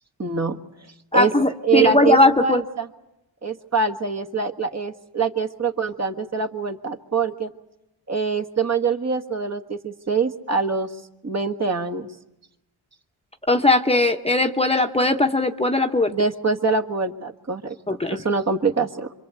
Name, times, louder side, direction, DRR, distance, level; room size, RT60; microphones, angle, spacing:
voice 1, 0.2-0.6 1.1-1.3 1.6-2.9 3.4-7.5 8.1-10.9 11.2-12.1 16.1-17.8 18.1-19.1, right 4 dB, 35° right, 5 dB, 1.7 m, -24 dB
voice 2, 1.1-2.6 13.5-16.1 17.9-18.2, left 2 dB, 15° left, 5 dB, 1.1 m, -19 dB
26.5 x 24.5 x 8.1 m, 0.92 s
wide cardioid pair, 105°, 44 cm